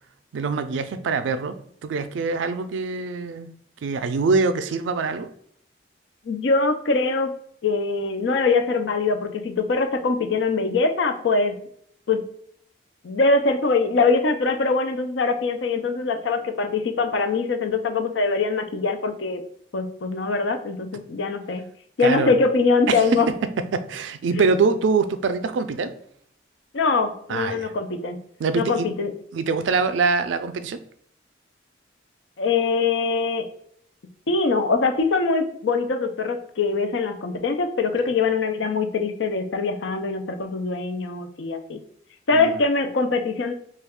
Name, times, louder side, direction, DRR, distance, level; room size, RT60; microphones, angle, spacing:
voice 1, 0.3-3.5 3.8-5.3 22.0-22.3 22.9-25.9 27.3-27.7 28.4-28.9 29.3-30.8 42.3-42.6, right 4 dB, 90° right, 11 dB, 0.3 m, -24 dB
voice 2, 6.3-7.3 7.6-11.5 12.1-12.2 13.0-19.4 19.7-21.7 22.0-23.3 26.7-28.2 28.5-29.1 32.4-33.5 34.3-41.8 42.3-43.5, left 4 dB, 85° left, 7 dB, 0.5 m, -23 dB
3.2 x 2.3 x 3.5 m, 0.65 s
head